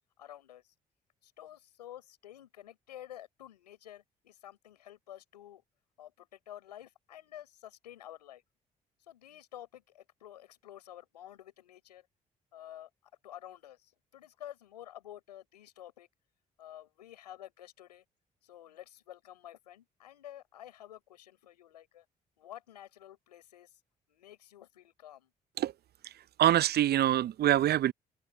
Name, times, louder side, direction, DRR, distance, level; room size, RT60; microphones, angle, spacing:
voice 1, 0.2-0.6 1.2-5.6 6.0-8.4 9.1-12.1 12.5-12.9 13.2-16.1 16.6-18.0 18.4-22.1 22.4-23.7 24.1-25.3, left 12 dB, 90° left, 6.9 m, -50 dB
voice 2, 26.4-27.9, right 12 dB, 50° right, 0.6 m, -25 dB
open air
hypercardioid pair, 45°, 20 cm